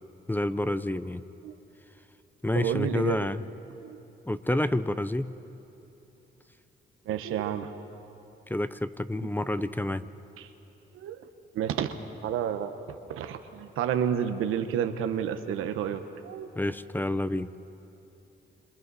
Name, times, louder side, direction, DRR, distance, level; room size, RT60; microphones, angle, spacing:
voice 1, 0.3-1.2 2.4-3.4 4.3-5.3 8.5-10.0 16.6-17.5, left 1 dB, 10° left, 13 dB, 0.7 m, -28 dB
voice 2, 2.5-3.3 3.8-4.0 7.0-7.7 10.4-10.5 10.9-11.3 11.5-11.9 12.2-16.5, right 9 dB, 85° right, 8 dB, 1.1 m, -30 dB
28.0 x 26.5 x 4.2 m, 3.0 s
cardioid pair, 65°, 21 cm